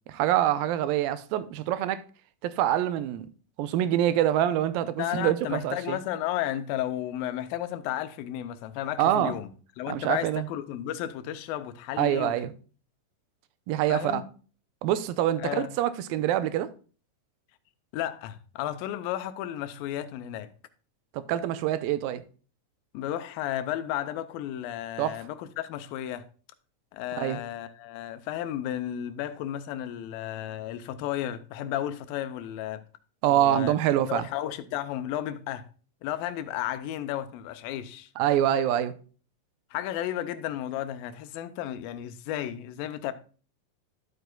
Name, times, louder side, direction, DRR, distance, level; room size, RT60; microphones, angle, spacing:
voice 1, 0.1-2.0 2.4-3.3 3.6-6.0 9.0-9.4 9.9-10.5 12.0-12.5 13.7-14.2 14.8-16.7 21.1-22.2 25.0-25.2 27.2-27.4 33.2-34.3 38.2-38.9, right 12 dB, 80° right, 2.4 m, -25 dB
voice 2, 5.0-9.5 9.8-12.4 13.9-14.2 15.4-15.8 17.9-20.5 22.9-26.3 26.9-32.8 33.3-33.7 34.1-35.7 36.0-38.1 39.7-43.1, left 12 dB, 85° left, 2.4 m, -33 dB
11.0 x 7.9 x 2.3 m
omnidirectional pair, 4.1 m